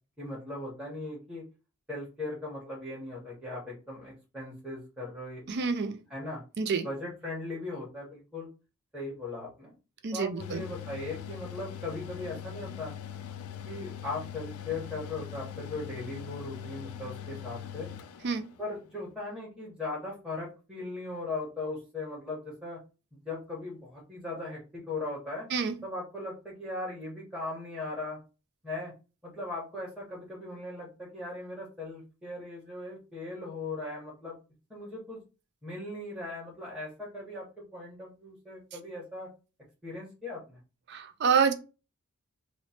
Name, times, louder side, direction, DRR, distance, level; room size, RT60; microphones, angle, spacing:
voice 1, 0.2-1.4 1.9-5.4 6.1-6.4 6.8-8.5 8.9-9.7 10.1-12.9 13.6-17.9 18.6-22.8 23.2-25.5 25.8-28.2 28.6-28.9 29.2-34.4 34.7-35.2 35.6-39.3 39.8-40.6, left 2 dB, 5° right, 0.9 m, -38 dB
voice 2, 5.5-6.0 6.6-6.9 10.0-10.6 18.2-18.4 25.5-25.8 40.9-41.5, right 5 dB, 50° right, 0.4 m, -27 dB
Mechanical fan, 10.4-18.8, left 9 dB, 85° left, 0.3 m, -42 dB
3.0 x 2.1 x 4.1 m
head